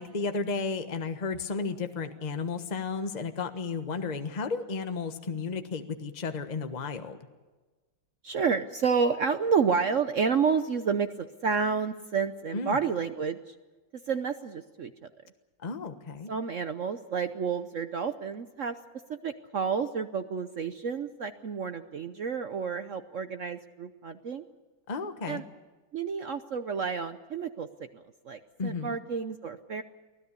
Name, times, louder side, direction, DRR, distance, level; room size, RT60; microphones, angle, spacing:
voice 1, 0.0-7.2 12.5-12.8 15.6-16.3 24.9-25.4 28.6-29.0, left 4 dB, 25° left, 7 dB, 1.2 m, -33 dB
voice 2, 8.2-13.5 14.1-14.9 16.3-18.8 19.1-24.4 25.3-25.4 25.9-27.7 27.9-29.8, right 6 dB, 55° right, 9 dB, 0.9 m, -30 dB
24.5 x 16.5 x 8.4 m, 1.3 s
omnidirectional pair, 2.1 m